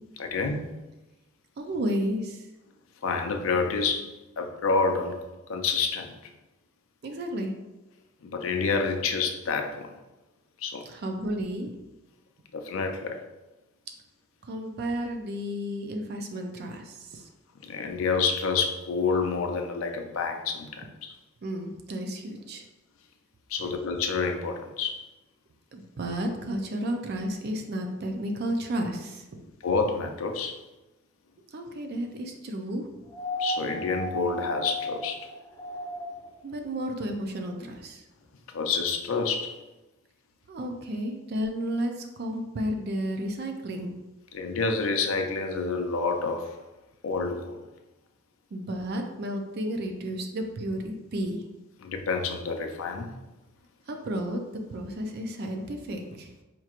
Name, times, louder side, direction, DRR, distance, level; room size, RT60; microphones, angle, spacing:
voice 1, 0.2-0.7 3.0-4.1 4.4-5.2 5.5-6.1 8.2-9.9 10.6-10.9 12.5-13.2 17.6-21.1 23.5-25.1 29.6-30.6 33.4-35.2 38.5-39.6 44.3-46.5 47.0-47.6 51.8-53.1, left 4 dB, 85° left, 4 dB, 0.5 m, -28 dB
voice 2, 1.6-2.5 7.0-7.5 10.8-11.7 14.4-17.3 21.4-22.6 23.6-23.7 25.7-29.4 31.5-32.9 36.4-38.0 40.5-44.0 48.5-51.5 53.9-54.4 54.7-56.3, equal, 50° right, 4 dB, 0.4 m, -32 dB
sound 1, 33.1-36.3 37.8-37.9, left 1 dB, 15° left, 0.8 m, -34 dB
4.4 x 2.9 x 2.4 m, 1.0 s
head